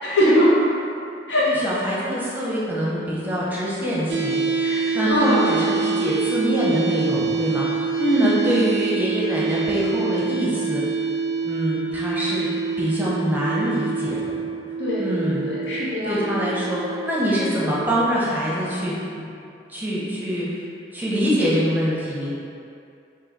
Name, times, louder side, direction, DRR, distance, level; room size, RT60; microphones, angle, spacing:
voice 1, 0.0-0.5 1.3-1.5 4.6-5.5 8.0-8.7 14.8-15.1 15.4-16.2, equal, 85° left, -8 dB, 1.2 m, -21 dB
voice 2, 1.4-10.8 11.4-12.5 12.8-14.4 15.0-15.5 16.0-19.3 19.7-20.6 20.9-22.4, equal, 10° right, -7 dB, 0.7 m, -25 dB
sound 1, 4.1-18.1, right 5 dB, 80° right, 0.4 m, -26 dB
3.8 x 2.7 x 3.9 m, 2.6 s
head